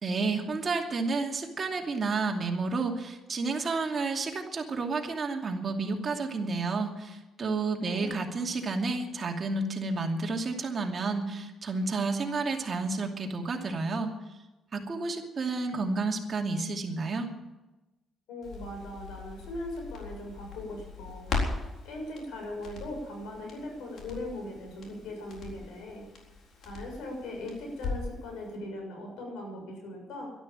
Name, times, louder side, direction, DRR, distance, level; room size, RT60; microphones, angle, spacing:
voice 1, 0.0-14.1 14.7-17.3, right 3 dB, 40° right, 2 dB, 2.6 m, -31 dB
voice 2, 7.5-8.1 18.3-21.3 21.8-26.1 26.6-30.3, left 1 dB, 90° left, 1 dB, 6.7 m, -39 dB
Crackle, 18.4-28.2 28.5-28.6, left 3 dB, 70° left, 4.1 m, -39 dB
12.5 x 12.0 x 8.9 m, 1.1 s
cardioid pair, 90°, 0 cm